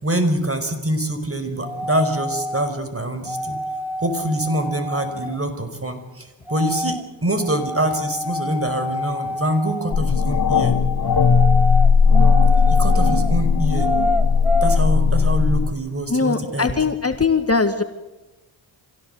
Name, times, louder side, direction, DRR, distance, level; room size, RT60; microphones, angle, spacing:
voice 1, 0.0-3.6 4.0-10.8 12.7-13.9 14.6-16.8, right 1 dB, 25° right, 9 dB, 5.1 m, -25 dB
sound 1, 1.6-2.8 3.2-5.4 6.5-7.0 7.4-9.9 11.0-13.3 13.8-14.8, equal, 5° right, 2.4 m, -27 dB
sound 2, 9.9-15.7, left 5 dB, 45° left, 1.7 m, -17 dB
voice 2, 16.1-17.8, left 4 dB, 30° left, 7 dB, 2.0 m, -20 dB
25.5 x 17.0 x 8.0 m, 1.0 s
supercardioid pair, 45°, 49 cm